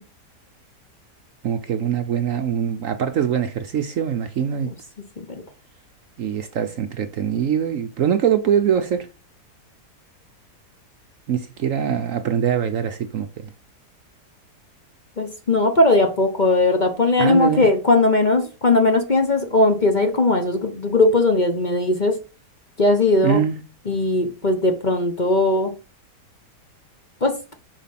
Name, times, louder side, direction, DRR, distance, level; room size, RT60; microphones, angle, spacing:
voice 1, 1.4-4.7 6.2-9.1 11.3-13.5 17.2-17.7 23.2-23.6, right 8 dB, 60° right, 0.9 m, -23 dB
voice 2, 15.2-22.2 22.8-23.4 23.9-25.7 27.2-27.3, left 2 dB, 30° left, 1.1 m, -19 dB
7.1 x 5.9 x 5.8 m
omnidirectional pair, 1.8 m